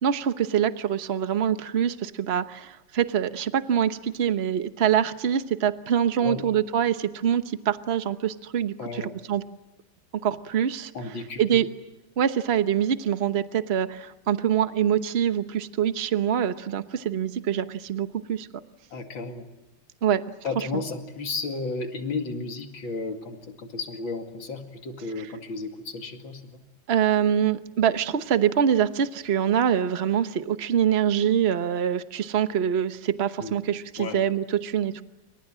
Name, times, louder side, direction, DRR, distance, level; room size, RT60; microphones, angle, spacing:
voice 1, 0.0-9.0 9.3-9.4 10.2-10.9 11.4-11.7 12.2-18.5 20.0-20.2 20.6-20.7 26.9-35.0, right 9 dB, 40° right, 11 dB, 1.1 m, -24 dB
voice 2, 6.2-6.5 8.8-9.2 10.9-11.6 18.9-19.5 20.4-26.6 33.4-33.6 34.0-34.2, left 3 dB, 85° left, 5 dB, 3.0 m, -33 dB
28.5 x 25.5 x 7.6 m, 1.0 s
omnidirectional pair, 2.1 m